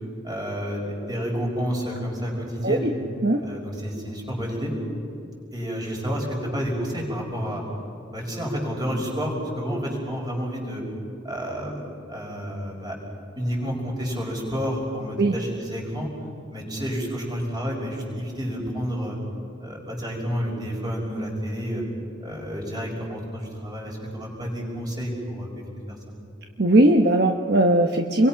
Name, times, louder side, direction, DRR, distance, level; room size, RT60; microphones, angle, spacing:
voice 1, 0.2-2.9 3.4-4.7 5.5-7.6 8.1-10.8 11.2-11.8 12.1-13.0 13.4-16.1 16.5-19.2 19.6-21.8 22.2-26.1, equal, 20° right, -1 dB, 5.9 m, -30 dB
voice 2, 26.6-28.3, right 1 dB, 50° right, 3 dB, 1.1 m, -19 dB
29.5 x 22.5 x 6.0 m, 2.6 s
head